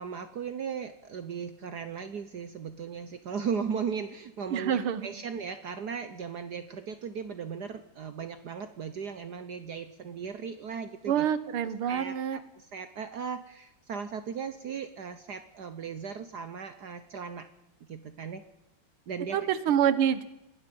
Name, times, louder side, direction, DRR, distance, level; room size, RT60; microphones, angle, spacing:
voice 1, 0.0-11.3 11.9-12.4 12.7-17.5 17.9-18.4 19.1-19.5, right 6 dB, 55° right, 10 dB, 1.4 m, -37 dB
voice 2, 4.5-5.1 11.1-12.4 19.3-20.2, right 9 dB, 80° right, 14 dB, 2.0 m, -26 dB
28.0 x 20.0 x 5.4 m, 0.94 s
omnidirectional pair, 2.4 m